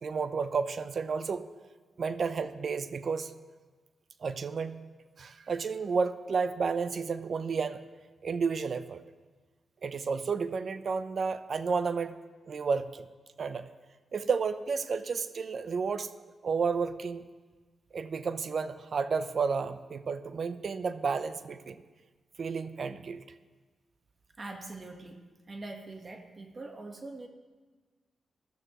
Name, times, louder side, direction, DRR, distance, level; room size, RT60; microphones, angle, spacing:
voice 1, 0.0-1.5 2.0-3.3 4.2-4.8 5.2-7.8 8.2-9.0 9.8-12.2 12.5-13.1 13.4-13.7 14.1-16.1 16.4-17.3 17.9-21.8 22.4-23.2, right 5 dB, 60° right, 12 dB, 0.6 m, -31 dB
voice 2, 24.4-27.3, right 2 dB, 45° right, 4 dB, 1.3 m, -43 dB
13.5 x 13.0 x 3.0 m, 1.3 s
supercardioid pair, 50°, 0 cm